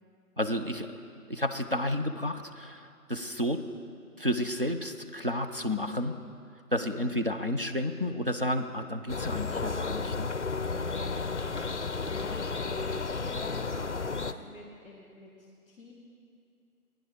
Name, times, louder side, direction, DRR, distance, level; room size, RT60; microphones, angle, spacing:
voice 1, 0.4-1.0 1.3-3.6 4.2-6.2 6.7-10.3, left 1 dB, 40° right, 4 dB, 0.4 m, -31 dB
voice 2, 6.8-7.2 10.8-11.3 12.1-15.9, left 2 dB, 20° left, -3 dB, 1.3 m, -46 dB
sound 1, 9.1-14.3, left 4 dB, 50° left, 0.5 m, -33 dB
14.5 x 10.0 x 5.1 m, 2.4 s
figure-of-eight pair, 150°, 46 cm